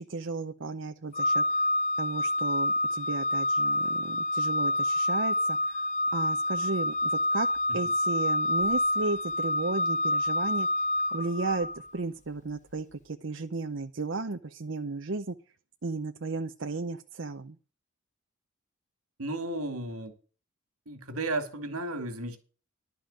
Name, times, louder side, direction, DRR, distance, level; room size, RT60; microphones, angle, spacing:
voice 1, 0.0-1.4 2.0-5.8 6.1-7.5 7.7-10.7 11.1-11.7 11.9-15.4 15.8-17.6, right 3 dB, 55° right, 0.7 m, -34 dB
Organ, 1.1-11.9, left 1 dB, 35° left, 0.7 m, -28 dB
voice 2, 19.2-20.1 20.9-22.4, right 2 dB, 90° right, 2.4 m, -33 dB
11.5 x 5.6 x 8.7 m
head